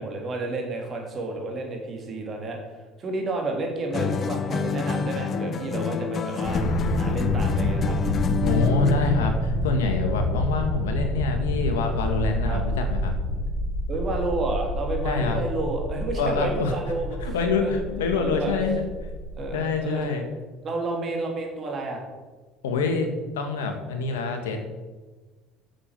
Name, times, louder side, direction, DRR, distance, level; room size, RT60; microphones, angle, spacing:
voice 1, 0.0-6.6 6.9-7.9 12.4-12.6 13.3-13.4 13.9-17.3 17.6-17.8 18.1-18.5 19.4-20.2 20.6-22.0, right 2 dB, 40° right, 2 dB, 3.3 m, -31 dB
sound 1, 3.9-9.3, left 5 dB, 40° left, 0.9 m, -27 dB
sound 2, 6.4-19.5, left 1 dB, 60° left, 1.8 m, -28 dB
voice 2, 8.4-13.1 15.0-15.4 16.2-16.7 17.2-18.9 19.5-20.2 22.6-23.1 23.3-24.6, left 4 dB, 90° left, 5 dB, 1.8 m, -26 dB
8.5 x 6.9 x 7.5 m, 1.3 s
supercardioid pair, 85°, 0 cm